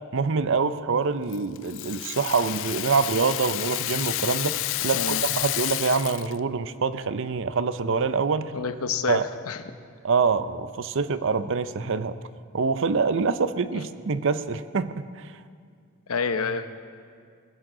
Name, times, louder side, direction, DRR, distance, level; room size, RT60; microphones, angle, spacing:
voice 1, 0.0-8.5 9.1-9.3 10.0-12.1 12.5-15.3, right 5 dB, 55° right, 13 dB, 0.6 m, -25 dB
Rattle (instrument), 1.3-6.4, left 17 dB, 55° left, 0.3 m, -30 dB
voice 2, 8.5-9.2 9.5-9.6 13.7-13.8 16.1-16.7, left 5 dB, 70° left, 9 dB, 0.8 m, -28 dB
21.0 x 16.0 x 3.8 m, 2.2 s
head